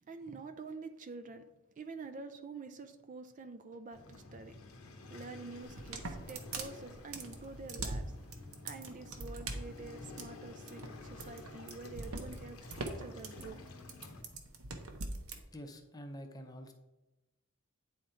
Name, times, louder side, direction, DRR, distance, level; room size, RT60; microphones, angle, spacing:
voice 1, 0.0-1.5 1.8-4.6 5.1-8.1 8.6-13.6, right 4 dB, 35° right, 8 dB, 0.4 m, -47 dB
Waves surf, 3.9-14.2, left 2 dB, 85° left, 1.0 m, -51 dB
sound 1, 5.6-15.4, right 3 dB, 75° right, 0.9 m, -42 dB
voice 2, 15.5-16.7, equal, 20° left, 5 dB, 0.7 m, -47 dB
9.0 x 3.8 x 4.3 m, 1.0 s
head